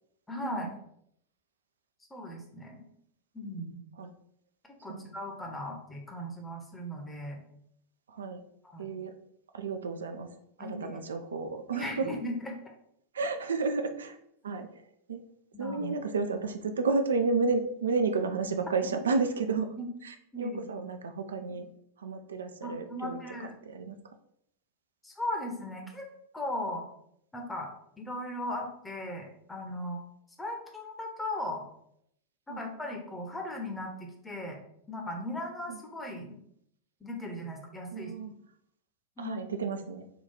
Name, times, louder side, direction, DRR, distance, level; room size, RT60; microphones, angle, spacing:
voice 1, 0.3-0.7 2.1-2.8 3.3-3.8 4.7-7.4 8.6-8.9 10.6-11.0 11.7-12.6 15.5-15.9 18.8-19.0 19.8-19.9 20.3-20.6 22.6-23.5 25.0-26.0 26.3-26.8 27.3-27.7 28.0-30.0 30.4-31.6 32.5-33.9 34.2-34.6 34.9-36.4 37.0-38.1 39.2-39.4, left 1 dB, 10° left, 1 dB, 0.8 m, -37 dB
voice 2, 8.1-8.4 8.8-9.1 9.5-10.3 10.6-12.1 13.1-14.2 14.4-14.8 15.1-15.2 15.6-19.7 20.0-21.7 22.0-23.2 23.7-24.0 32.5-32.6 35.7-35.8 37.9-38.3 39.2-40.0, right 4 dB, 70° right, 6 dB, 0.3 m, -31 dB
3.7 x 2.3 x 4.2 m, 0.72 s
figure-of-eight pair, 90°, 0 cm